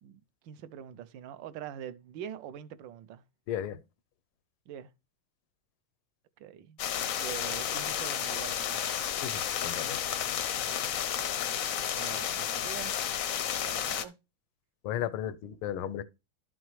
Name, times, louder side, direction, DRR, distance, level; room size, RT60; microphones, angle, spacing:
voice 1, 0.0-3.2 4.7-4.9 6.4-6.8 7.2-8.9 11.2-12.9 13.6-14.2, right 10 dB, 70° right, 1.2 m, -44 dB
voice 2, 3.5-3.8 9.2-10.0 14.8-16.0, left 10 dB, 90° left, 1.5 m, -35 dB
sound 1, 6.8-14.0, left 9 dB, 70° left, 0.8 m, -32 dB
11.5 x 6.1 x 3.1 m
omnidirectional pair, 2.3 m